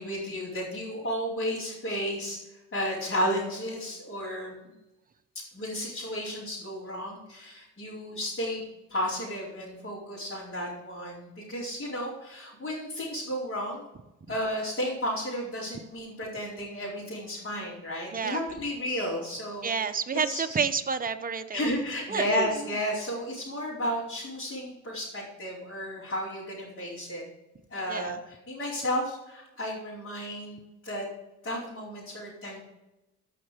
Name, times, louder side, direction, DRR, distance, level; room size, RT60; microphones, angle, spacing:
voice 1, 0.0-4.5 5.3-8.6 8.9-13.8 14.3-19.7 20.2-20.6 21.5-27.2 27.7-31.1 31.4-32.6, equal, 35° left, -8 dB, 4.4 m, -33 dB
voice 2, 19.6-21.7 22.1-22.5 27.9-28.2, right 6 dB, 25° right, 9 dB, 0.8 m, -29 dB
14.5 x 5.8 x 5.1 m, 1.0 s
cardioid pair, 100°, 33 cm